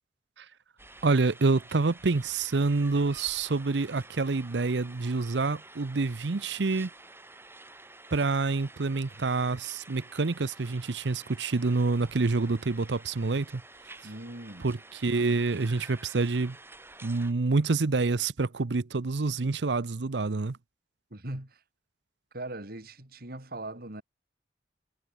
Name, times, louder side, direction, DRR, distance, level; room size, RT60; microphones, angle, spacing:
sound 1, 0.8-17.3, right 2 dB, 15° right, 7.3 m, -50 dB
voice 1, 1.0-6.9 8.1-13.6 14.6-16.6 17.0-20.6, right 3 dB, 80° right, 0.7 m, -27 dB
voice 2, 14.0-14.7 21.1-21.6 22.3-24.0, right 1 dB, 60° right, 3.1 m, -40 dB
head